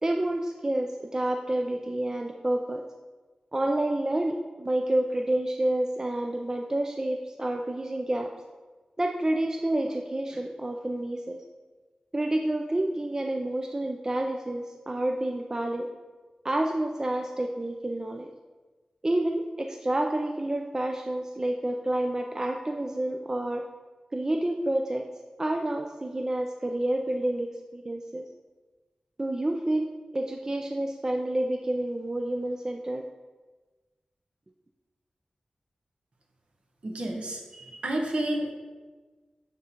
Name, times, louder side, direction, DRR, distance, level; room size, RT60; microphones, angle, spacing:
voice 1, 0.0-2.8 3.5-8.3 9.0-11.4 12.1-15.9 16.4-18.3 19.0-23.6 24.1-25.1 25.4-28.2 29.2-29.9 30.1-33.0, right 1 dB, 25° right, 3 dB, 0.4 m, -29 dB
voice 2, 36.8-38.5, right 1 dB, 60° right, 1 dB, 1.0 m, -30 dB
9.5 x 3.6 x 2.9 m, 1.3 s
wide cardioid pair, 60°, 2 cm